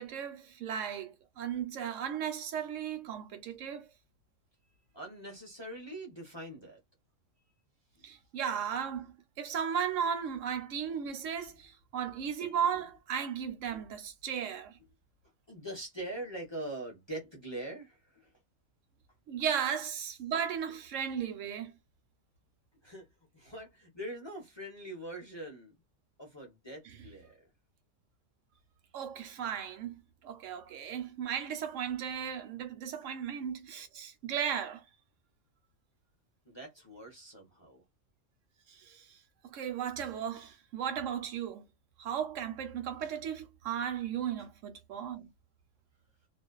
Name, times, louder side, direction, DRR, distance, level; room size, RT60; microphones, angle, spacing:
voice 1, 0.0-3.9 8.0-14.8 19.3-21.7 26.8-27.0 28.9-34.8 38.7-39.2 39.4-41.6 42.0-45.3, right 8 dB, 75° right, 0.9 m, -36 dB
voice 2, 4.9-6.8 15.5-18.3 22.8-23.1 23.3-25.7 26.2-27.3 36.5-37.8, right 1 dB, 25° left, 0.6 m, -43 dB
2.5 x 2.1 x 2.3 m
omnidirectional pair, 1.3 m